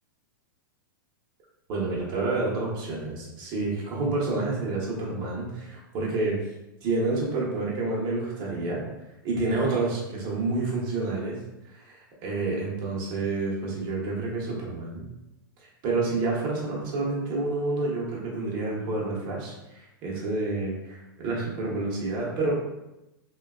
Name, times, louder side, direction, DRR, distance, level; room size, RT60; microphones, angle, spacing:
voice 1, 1.7-6.4 6.8-8.8 9.2-11.4 11.7-12.0 12.2-15.1 15.8-22.5, right 3 dB, 35° right, -4 dB, 0.8 m, -29 dB
2.7 x 2.2 x 2.3 m, 0.94 s
hypercardioid pair, 145°, 12 cm